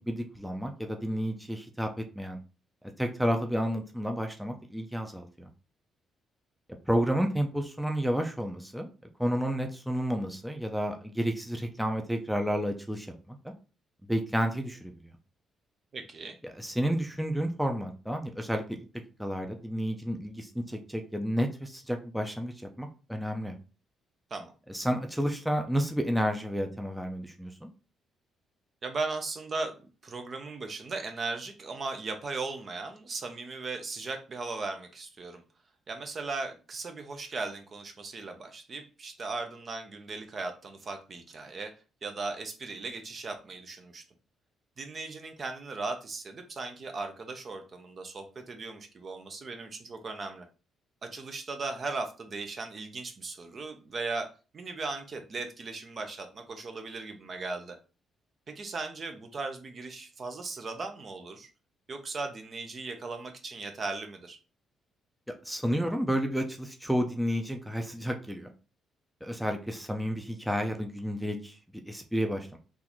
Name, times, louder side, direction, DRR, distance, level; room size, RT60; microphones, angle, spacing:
voice 1, 0.1-2.4 3.0-5.5 6.9-8.9 9.2-13.5 14.1-15.1 16.4-18.8 19.2-23.5 24.7-27.7 65.4-68.5 69.2-71.6 71.9-72.6, equal, 5° right, 4 dB, 0.5 m, -31 dB
voice 2, 15.9-16.4 24.3-24.5 28.8-29.8 30.0-35.4 35.9-41.7 42.0-44.0 44.8-50.5 51.0-54.3 54.5-57.8 58.5-61.5 61.9-64.4, right 3 dB, 45° right, 6 dB, 0.6 m, -37 dB
3.6 x 2.6 x 3.0 m, 0.34 s
cardioid pair, 90°, 0 cm